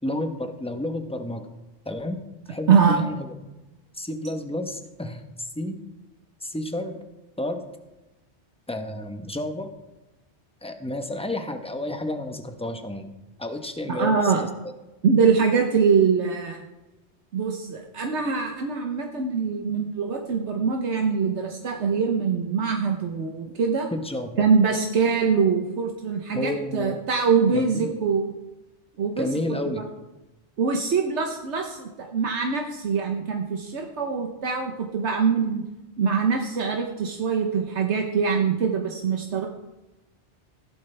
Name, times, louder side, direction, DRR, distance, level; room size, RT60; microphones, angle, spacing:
voice 1, 0.0-1.5 1.8-2.2 2.5-3.3 3.9-5.8 6.4-7.0 7.4-7.6 8.7-9.7 10.6-13.1 13.4-14.5 23.9-24.5 26.3-27.0 27.5-28.0 29.2-29.9, left 1 dB, 5° left, 6 dB, 0.9 m, -31 dB
voice 2, 2.7-3.0 13.9-14.4 15.0-16.6 17.3-23.9 24.4-28.3 29.0-29.3 30.6-35.6 36.0-39.5, right 5 dB, 75° right, 2 dB, 1.3 m, -23 dB
16.0 x 11.0 x 3.4 m, 1.0 s
omnidirectional pair, 1.2 m